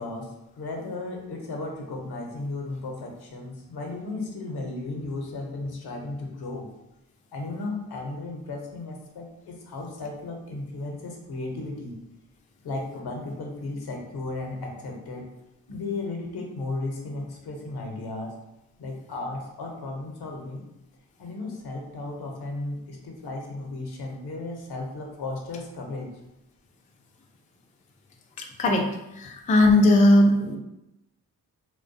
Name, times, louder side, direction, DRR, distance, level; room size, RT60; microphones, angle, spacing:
voice 1, 0.0-6.7 7.3-11.9 12.6-15.3 15.7-18.3 18.8-20.7 21.2-26.1, left 2 dB, 70° left, 1 dB, 0.7 m, -35 dB
voice 2, 29.1-30.6, left 1 dB, 20° left, 2 dB, 0.3 m, -18 dB
2.3 x 2.2 x 2.6 m, 0.88 s
cardioid pair, 50°, 40 cm